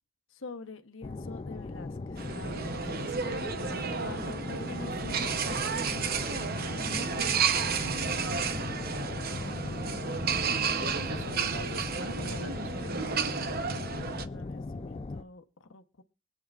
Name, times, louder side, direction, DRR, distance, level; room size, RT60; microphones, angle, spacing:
voice 1, 0.3-3.6 3.9-7.6 9.6-9.9 14.2-16.0, left 3 dB, 80° left, 1.0 m, -46 dB
sound 1, 1.0-15.2, left 3 dB, 30° left, 0.5 m, -38 dB
sound 2, 2.2-14.2, right 6 dB, 50° right, 0.9 m, -32 dB
voice 2, 10.7-13.4, equal, 75° right, 2.1 m, -42 dB
24.5 x 8.6 x 2.4 m
head